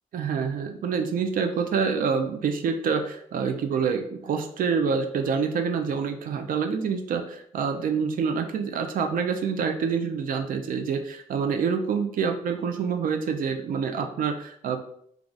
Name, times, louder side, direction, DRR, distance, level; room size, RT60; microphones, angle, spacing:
voice 1, 0.1-14.8, right 6 dB, 75° right, 6 dB, 0.6 m, -27 dB
4.8 x 2.3 x 3.9 m, 0.66 s
wide cardioid pair, 140°, 14 cm